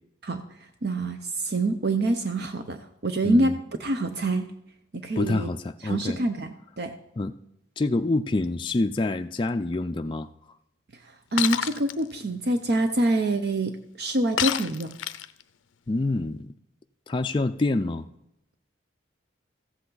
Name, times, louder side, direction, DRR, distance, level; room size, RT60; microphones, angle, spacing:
voice 1, 0.8-3.5 3.8-4.4 5.0-5.5 5.8-6.5 6.8-6.9 11.3-14.9, right 2 dB, 55° right, 7 dB, 0.7 m, -25 dB
voice 2, 3.2-3.5 5.2-6.2 7.2-7.3 7.8-10.3 15.9-16.5 17.1-18.0, left 2 dB, 25° left, 6 dB, 0.3 m, -26 dB
Shatter, 11.4-12.0 14.4-15.4, left 10 dB, 80° left, 0.5 m, -27 dB
14.5 x 8.2 x 3.9 m, 0.82 s
head